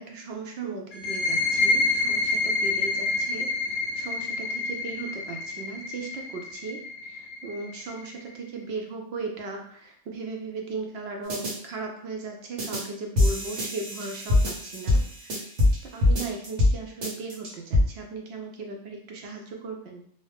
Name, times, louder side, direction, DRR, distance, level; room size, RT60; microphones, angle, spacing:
voice 1, 0.0-15.4 15.9-20.0, right 3 dB, 70° right, 1 dB, 0.8 m, -37 dB
sound 1, 0.9-8.3, left 3 dB, 60° left, 0.6 m, -28 dB
sound 2, 11.3-11.5 12.6-12.8 13.2-15.8 16.0-16.7 17.0-17.8, left 2 dB, 90° right, 1.2 m, -23 dB
2.6 x 2.0 x 3.2 m, 0.62 s
omnidirectional pair, 1.2 m